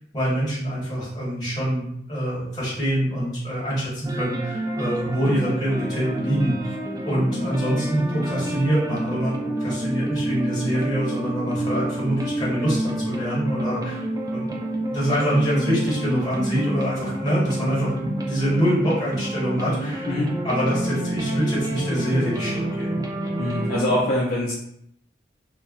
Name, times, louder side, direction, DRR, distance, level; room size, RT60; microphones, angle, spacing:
voice 1, 0.1-6.7 7.0-14.0 14.3-14.6 14.9-20.1 20.4-23.0, equal, 25° left, -7 dB, 1.2 m, -25 dB
sound 1, 4.0-24.0, right 1 dB, 20° right, 0.4 m, -29 dB
voice 2, 23.4-24.5, left 1 dB, 50° left, -6 dB, 0.5 m, -23 dB
2.2 x 2.0 x 3.7 m, 0.73 s
head